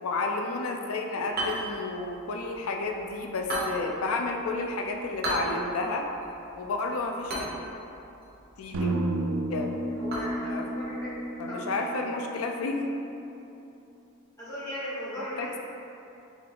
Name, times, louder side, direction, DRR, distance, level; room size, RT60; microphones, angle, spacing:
voice 1, 0.0-6.1 6.5-7.5 8.6-8.9 9.5-9.7 10.4-10.7 11.4-13.0 15.2-15.6, left 3 dB, 80° left, 3 dB, 0.4 m, -31 dB
sound 1, 1.3-11.4, right 1 dB, 45° right, 0.8 m, -38 dB
sound 2, 8.7-12.9, right 1 dB, 65° right, 0.3 m, -32 dB
voice 2, 9.9-11.1 11.5-12.3 14.4-15.6, equal, 15° left, -11 dB, 1.0 m, -38 dB
3.5 x 3.3 x 3.8 m, 2.8 s
head